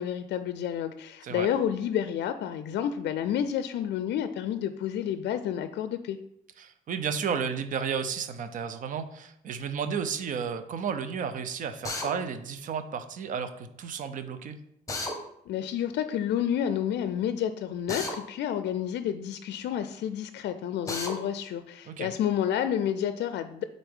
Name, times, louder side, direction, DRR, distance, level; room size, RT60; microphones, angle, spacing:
voice 1, 0.0-6.2 15.5-23.6, left 9 dB, 70° left, 10 dB, 0.4 m, -30 dB
voice 2, 6.6-14.6 21.9-22.1, right 6 dB, 45° right, 9 dB, 0.6 m, -32 dB
Drill, 11.8-12.1 14.9-15.2 17.9-18.2 20.9-21.1, left 2 dB, 20° left, 1.1 m, -32 dB
9.0 x 3.9 x 3.6 m, 0.75 s
cardioid pair, 140°, 18 cm